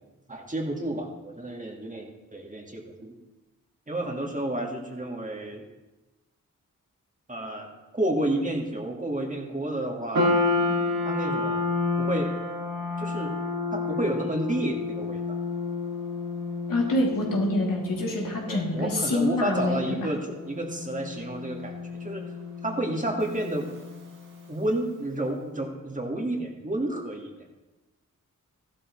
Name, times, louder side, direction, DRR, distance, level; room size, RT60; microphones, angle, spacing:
voice 1, 0.3-3.1 3.9-5.7 7.3-10.3 11.0-11.6 12.0-12.4 13.0-13.3 13.7-15.4 18.5-21.7 22.0-22.3 22.6-23.7 24.5-27.3, right 1 dB, 25° right, 1 dB, 2.0 m, -30 dB
sound 1, 10.1-24.6, left 3 dB, 75° right, 2.2 m, -31 dB
voice 2, 16.7-19.8, left 1 dB, 85° left, -3 dB, 3.1 m, -26 dB
14.5 x 11.5 x 3.2 m, 1.1 s
wide cardioid pair, 95°, 32 cm